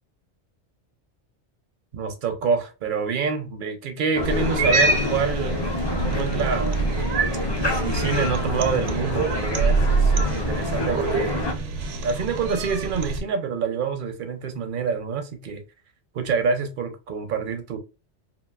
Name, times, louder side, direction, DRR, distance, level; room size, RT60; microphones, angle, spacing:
voice 1, 1.9-5.8 6.0-6.8 7.6-11.5 12.0-15.6 16.1-17.8, right 5 dB, 60° right, 0.6 m, -27 dB
sound 1, 4.2-11.5, left 2 dB, 40° left, 0.4 m, -28 dB
Cat, 4.2-13.2, right 3 dB, 85° right, 0.9 m, -25 dB
2.9 x 2.5 x 2.2 m
omnidirectional pair, 1.2 m